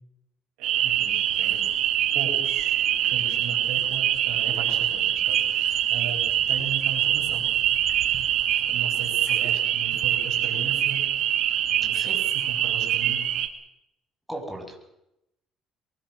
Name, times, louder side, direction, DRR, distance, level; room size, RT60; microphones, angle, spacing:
sound 1, 0.6-13.5, right 11 dB, 70° right, 2.1 m, -24 dB
voice 1, 0.6-1.6 2.1-2.8 3.0-7.4 8.6-11.0 11.7-13.2, right 6 dB, 85° right, 0 dB, 6.7 m, -37 dB
voice 2, 14.3-14.8, right 1 dB, ahead, 0 dB, 6.7 m, -36 dB
22.5 x 20.5 x 6.4 m, 0.86 s
supercardioid pair, 90°, 0 cm